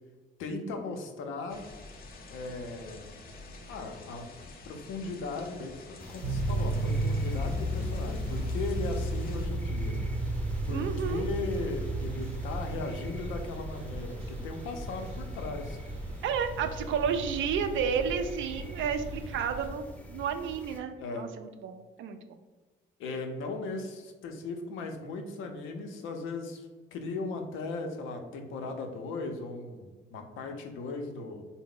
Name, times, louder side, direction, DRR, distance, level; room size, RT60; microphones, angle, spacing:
voice 1, 0.4-1.7 2.3-3.1 3.7-4.3 4.6-10.0 10.7-15.8 21.0-21.3 23.0-31.4, left 3 dB, 90° left, 4 dB, 0.5 m, -37 dB
sound 1, 1.5-9.5, left 3 dB, 50° left, 0.6 m, -49 dB
sound 2, 6.0-20.8, equal, 5° left, 0.6 m, -46 dB
sound 3, 6.2-19.7, right 1 dB, 30° right, 0.8 m, -34 dB
voice 2, 10.7-11.2 16.2-22.4, right 7 dB, 75° right, 8 dB, 0.4 m, -31 dB
3.6 x 2.0 x 3.7 m, 1.3 s
cardioid pair, 90°, 20 cm